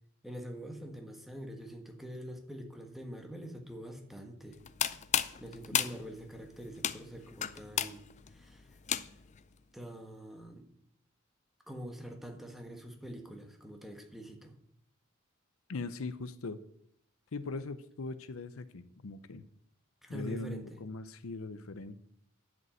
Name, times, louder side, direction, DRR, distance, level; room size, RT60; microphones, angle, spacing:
voice 1, 0.2-4.6 5.4-8.0 8.3-8.7 9.7-10.7 11.7-14.6 20.0-20.8, equal, ahead, 4 dB, 1.4 m, -45 dB
sound 1, 4.5-9.4, left 10 dB, 35° left, 0.5 m, -34 dB
voice 2, 15.7-16.6 17.3-19.4 20.1-22.0, left 3 dB, 80° left, 13 dB, 0.7 m, -40 dB
11.0 x 5.3 x 7.7 m, 0.71 s
head